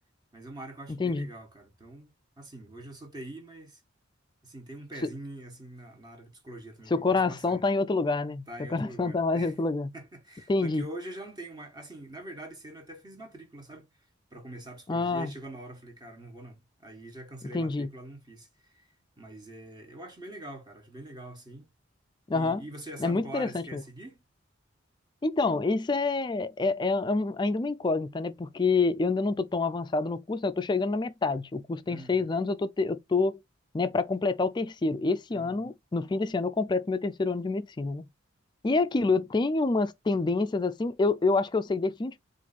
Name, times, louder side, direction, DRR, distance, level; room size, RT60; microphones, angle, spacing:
voice 1, 0.3-2.1 2.4-3.8 4.4-7.6 8.5-9.5 9.9-13.9 14.3-18.5 18.7-21.7 22.3-24.2 31.9-32.3 35.3-35.7 38.9-39.1, right 1 dB, 20° right, 1.2 m, -44 dB
voice 2, 6.9-8.4 8.7-9.9 10.5-10.8 14.9-15.3 17.5-17.9 22.3-22.6 23.0-23.8 25.2-33.4 33.7-38.1 38.6-42.2, left 3 dB, 25° left, 0.3 m, -27 dB
4.4 x 2.6 x 4.1 m
head